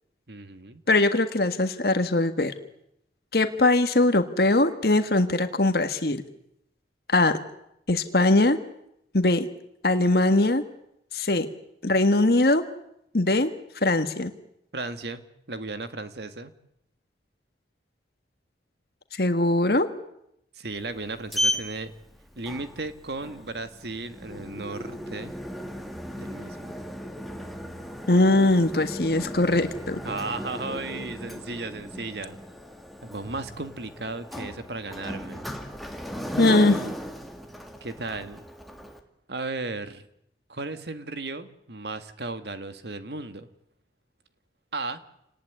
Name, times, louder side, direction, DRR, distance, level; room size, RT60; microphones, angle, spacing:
voice 1, 0.3-0.8 14.7-15.2 15.5-16.5 20.6-21.9 22.4-25.3 26.2-26.7 30.0-32.4 33.0-35.5 37.8-38.4 39.3-40.0 40.5-43.5 44.7-45.0, right 3 dB, 75° right, 10 dB, 1.9 m, -35 dB
voice 2, 0.9-2.5 3.3-6.2 7.1-7.3 7.9-8.6 9.1-9.5 9.8-10.6 11.1-11.5 11.8-12.6 13.1-13.5 13.8-14.3 19.1-19.9 28.1-30.0 36.4-36.8, left 2 dB, 60° left, 8 dB, 1.6 m, -21 dB
Sliding door, 20.7-39.0, equal, ahead, 2.0 m, -36 dB
28.5 x 19.5 x 9.7 m, 0.79 s
head